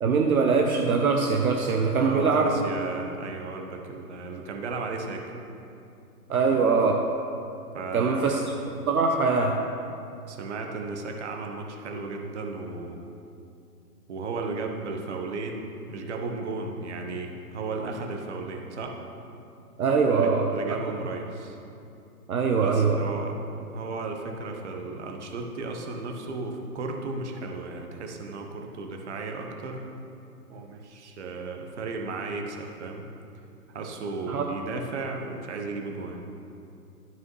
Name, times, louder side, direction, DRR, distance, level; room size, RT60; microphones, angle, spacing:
voice 1, 0.0-2.9 6.3-7.0 7.9-8.4 8.9-9.6 19.8-20.5 22.3-23.0 34.3-34.4, right 4 dB, 65° right, 2 dB, 0.8 m, -22 dB
voice 2, 2.0-5.3 7.7-8.4 10.3-13.0 14.1-19.0 20.1-21.6 22.6-23.4 23.7-29.8 30.5-33.1 33.7-36.2, right 3 dB, 45° right, 2 dB, 1.1 m, -35 dB
12.5 x 5.5 x 3.1 m, 2.6 s
hypercardioid pair, 145°, 47 cm